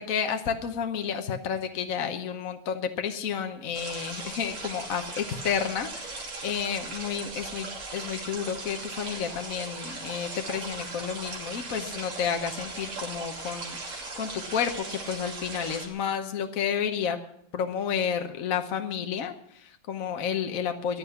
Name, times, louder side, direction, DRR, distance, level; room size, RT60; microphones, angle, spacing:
voice 1, 0.0-17.2 17.5-21.0, left 7 dB, 55° left, 6 dB, 1.0 m, -31 dB
sound 1, 3.7-15.9, right 3 dB, 75° right, 3.7 m, -38 dB
14.5 x 11.0 x 7.0 m, 0.72 s
omnidirectional pair, 2.4 m